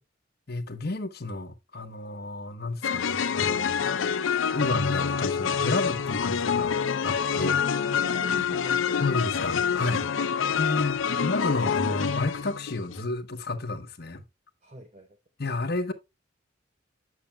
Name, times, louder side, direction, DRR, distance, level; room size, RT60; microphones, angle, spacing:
voice 1, 0.5-3.8 4.5-6.7 7.0-7.5 9.0-14.2 15.4-15.9, left 2 dB, 55° left, 1.2 m, -31 dB
sound 1, 2.8-13.0, left 7 dB, 80° left, 0.6 m, -27 dB
voice 2, 7.4-9.0 11.0-11.2 14.6-15.1, right 1 dB, 35° right, 1.0 m, -43 dB
8.7 x 6.9 x 2.2 m
head